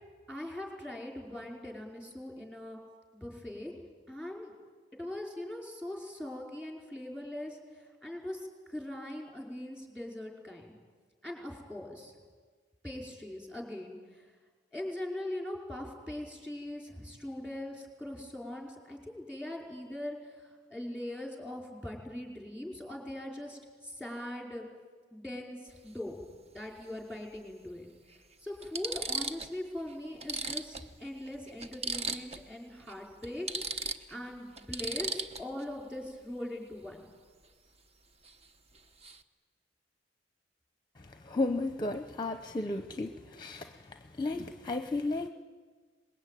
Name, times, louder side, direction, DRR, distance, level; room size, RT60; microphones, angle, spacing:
voice 1, 0.3-2.8 3.1-3.7 4.1-4.5 4.9-10.8 11.2-12.1 12.8-14.3 14.7-24.7 25.1-26.2 26.5-27.9 28.4-33.5 34.1-37.1, left 1 dB, 5° right, 1 dB, 5.1 m, -41 dB
sound 1, 25.7-25.9 27.4-27.5 28.1-28.2 28.6-29.6 29.9-30.0 30.2-32.5 32.8-32.9 33.2-35.6 38.2-38.5 38.7-39.2, right 4 dB, 35° right, 1.0 m, -37 dB
voice 2, 41.0-45.3, left 2 dB, 25° left, 8 dB, 0.8 m, -34 dB
24.0 x 21.0 x 9.3 m, 1.5 s
head